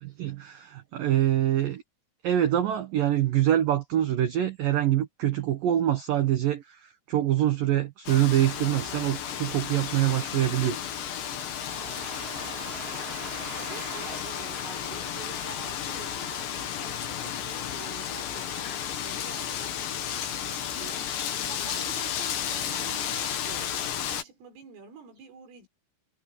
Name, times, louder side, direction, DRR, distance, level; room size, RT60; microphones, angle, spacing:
voice 1, 0.0-1.8 2.2-10.8, right 12 dB, 65° right, 2.4 m, -25 dB
Wind, 8.1-24.2, left 9 dB, 65° left, 4.3 m, -33 dB
Domestic sounds home sounds, 11.3-16.3, right 5 dB, 35° right, 3.7 m, -44 dB
voice 2, 13.0-16.5 16.8-20.1 20.4-25.7, right 7 dB, 90° right, 8.3 m, -48 dB
omnidirectional pair, 5.6 m